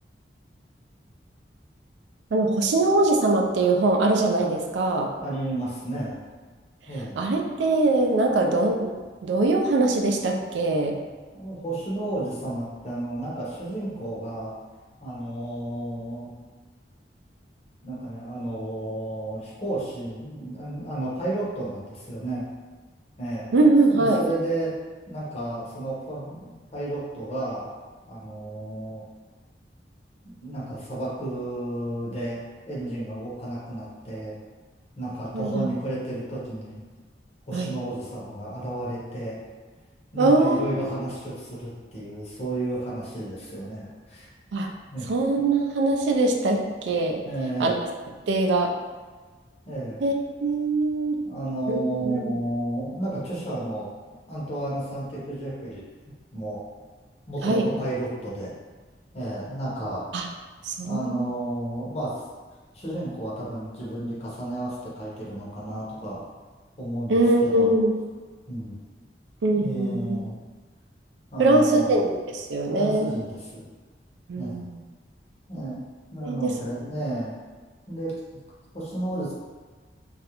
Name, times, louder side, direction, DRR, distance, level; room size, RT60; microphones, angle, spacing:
voice 1, 2.3-5.1 7.2-8.9 9.2-11.0 23.5-24.2 35.3-35.7 37.5-37.8 40.2-40.9 44.5-44.7 45.1-47.2 47.6-47.7 48.3-48.7 50.0-50.1 50.4-51.2 51.7-52.2 57.4-57.7 60.1-60.3 60.6-61.3 67.1-67.9 69.4-70.2 71.4-73.1 74.3-74.8 76.2-76.5, right 2 dB, 85° right, 2 dB, 0.3 m, -22 dB
voice 2, 5.2-6.2 6.9-7.2 11.3-14.5 15.0-16.3 17.8-22.5 23.2-23.6 23.9-24.7 25.1-27.7 28.1-29.0 30.4-32.4 32.7-34.4 35.0-36.8 37.5-39.4 40.1-44.3 44.9-45.1 47.2-47.7 49.7-50.0 51.3-53.9 54.3-55.8 56.3-56.6 57.3-58.5 59.1-60.0 60.7-62.1 62.7-66.2 66.8-67.7 68.5-68.7 69.5-70.4 71.3-72.0 72.7-73.6 74.3-74.6 75.5-75.8 76.1-77.3 77.9-78.1 78.7-79.3, right 1 dB, 35° left, -7 dB, 0.7 m, -32 dB
2.4 x 2.1 x 2.9 m, 1.4 s
head